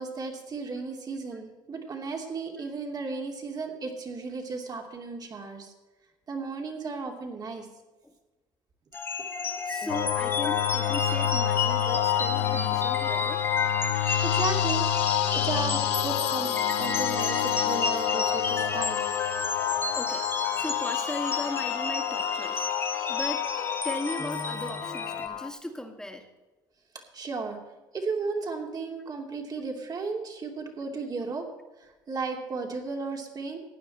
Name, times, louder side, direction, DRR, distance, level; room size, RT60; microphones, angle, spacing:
voice 1, 0.0-5.7 6.3-7.7 13.8-14.8 15.3-19.0 26.9-27.6 27.9-31.4 31.8-33.6, right 4 dB, 40° right, 2 dB, 2.8 m, -34 dB
sound 1, 8.9-25.3, left 3 dB, 25° left, 1.8 m, -32 dB
voice 2, 9.7-13.5 19.9-20.3 20.5-22.7 23.1-23.5 23.8-26.3, left 1 dB, 5° left, 4 dB, 2.1 m, -37 dB
sound 2, 9.9-25.5, left 12 dB, 80° left, 0.9 m, -28 dB
15.5 x 9.7 x 4.4 m, 1.2 s
supercardioid pair, 85°, 10 cm